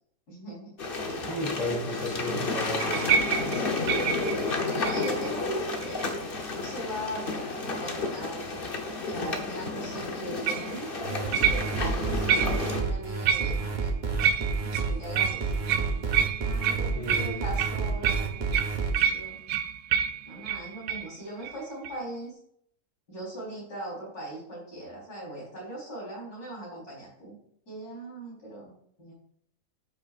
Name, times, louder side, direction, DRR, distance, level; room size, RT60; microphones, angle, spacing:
voice 1, 0.3-0.8 3.5-6.1 6.5-8.7 9.1-13.9 14.2-15.6 16.4-18.6 19.1-19.4 20.2-22.4 23.1-27.4 27.7-29.1, right 1 dB, 65° left, -5 dB, 4.5 m, -40 dB
sound 1, 0.8-12.8, left 3 dB, 40° left, 1.1 m, -31 dB
voice 2, 1.1-3.0 16.9-17.4, left 1 dB, 20° left, -4 dB, 2.7 m, -33 dB
sound 2, 2.8-5.3 5.8-6.2 10.5-10.7 11.3-11.9 12.3-12.8 13.3-13.8 14.2-21.1 21.4-21.6 21.8-22.0, right 8 dB, 75° right, 1.1 m, -28 dB
sound 3, 11.0-18.9, right 4 dB, 35° right, 0.9 m, -30 dB
12.5 x 6.2 x 2.5 m, 0.68 s
omnidirectional pair, 1.7 m